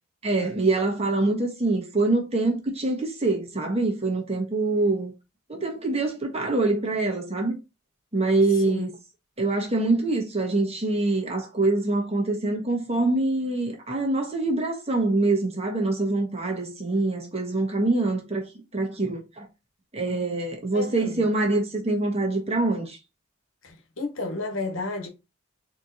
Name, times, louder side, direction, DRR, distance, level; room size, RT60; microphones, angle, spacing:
voice 1, 0.2-5.1 5.5-7.6 8.1-8.9 9.4-19.5 19.9-23.0, right 2 dB, 30° right, 1.3 m, -25 dB
voice 2, 20.7-21.3 23.6-25.1, left 2 dB, 80° left, 1.2 m, -32 dB
4.3 x 2.9 x 4.0 m
head